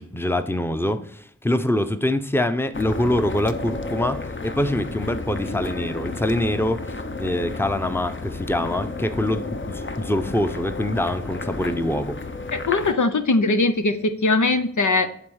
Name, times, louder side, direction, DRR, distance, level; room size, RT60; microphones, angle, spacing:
voice 1, 0.0-6.8 7.2-12.2, left 1 dB, 10° left, 10 dB, 0.7 m, -24 dB
sound 1, 2.7-12.9, left 3 dB, 40° left, 0.8 m, -32 dB
voice 2, 12.5-15.1, left 3 dB, 90° left, 9 dB, 0.8 m, -20 dB
11.0 x 4.0 x 6.4 m, 0.63 s
wide cardioid pair, 45°, 29 cm